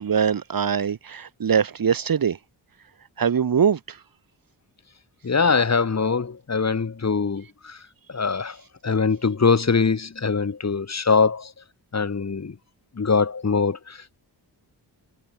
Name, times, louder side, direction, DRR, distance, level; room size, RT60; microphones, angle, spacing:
voice 1, 0.0-2.4 3.2-4.0, right 7 dB, 50° right, 1.0 m, -22 dB
voice 2, 5.2-7.8 8.1-8.6 8.8-11.5 11.9-12.6 13.0-14.2, left 5 dB, 35° left, 2.0 m, -22 dB
wide cardioid pair, 175°, 44 cm